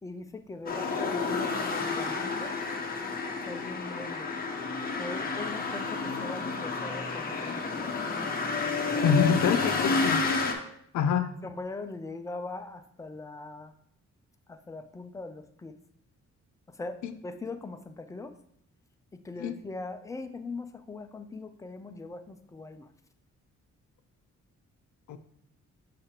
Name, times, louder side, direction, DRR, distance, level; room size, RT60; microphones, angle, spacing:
voice 1, 0.0-2.6 3.5-4.3 5.0-8.0 8.9-9.1 11.4-13.7 14.5-15.8 16.7-18.4 19.2-22.9, left 3 dB, 10° left, 7 dB, 0.3 m, -41 dB
sound 1, 0.7-10.5, left 4 dB, 30° left, 0.8 m, -30 dB
voice 2, 9.0-10.3 10.9-11.3 17.0-17.1 19.4-19.5 25.1-25.2, left 7 dB, 75° left, 8 dB, 0.5 m, -25 dB
6.6 x 5.7 x 2.8 m, 0.69 s
wide cardioid pair, 160°, 29 cm